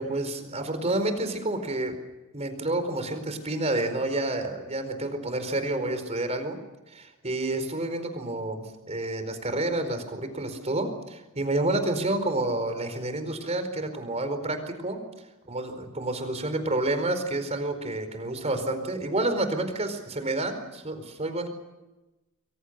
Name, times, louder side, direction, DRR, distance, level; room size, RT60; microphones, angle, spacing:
voice 1, 0.0-1.9 2.3-6.6 6.9-15.0 15.5-21.5, right 2 dB, 30° right, 8 dB, 4.6 m, -29 dB
29.5 x 23.0 x 6.7 m, 1.1 s
head